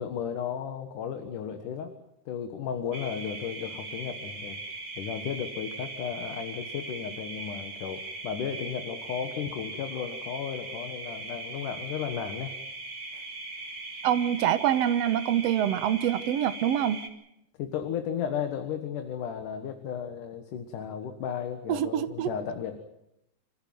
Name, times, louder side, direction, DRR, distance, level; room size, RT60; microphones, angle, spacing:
voice 1, 0.0-1.9 2.3-4.6 5.0-12.6 13.1-13.2 17.6-22.8, left 8 dB, 80° left, 7 dB, 3.0 m, -34 dB
sound 1, 2.9-17.1, right 2 dB, 35° right, 4.0 m, -40 dB
voice 2, 14.0-17.0 21.7-22.3, right 10 dB, 65° right, 11 dB, 1.9 m, -25 dB
27.0 x 15.5 x 9.3 m, 0.83 s
omnidirectional pair, 3.6 m